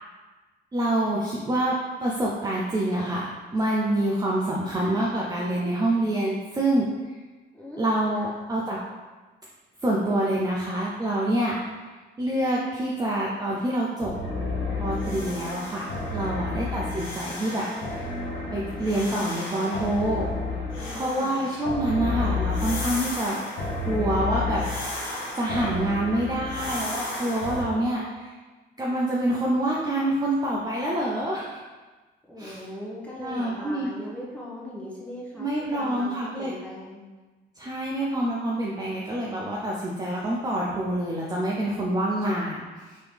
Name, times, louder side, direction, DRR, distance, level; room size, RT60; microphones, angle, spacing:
voice 1, 0.7-1.8 2.0-6.9 7.8-8.8 9.8-11.6 12.2-14.1 14.8-17.7 17.9-18.1 18.5-20.3 20.9-23.4 23.9-24.6 25.4-28.3 28.8-31.6 32.4-32.6 33.2-33.9 35.4-36.5 37.6-43.0, right 1 dB, 20° right, -4 dB, 0.5 m, -26 dB
voice 2, 7.5-7.9 8.2-8.3 16.3-16.6 20.7-21.5 32.3-37.0, left 1 dB, 5° left, -6 dB, 1.1 m, -39 dB
sound 1, 14.0-27.6, left 3 dB, 75° left, 0.9 m, -31 dB
3.7 x 3.0 x 3.3 m, 1.3 s
cardioid pair, 90°, 20 cm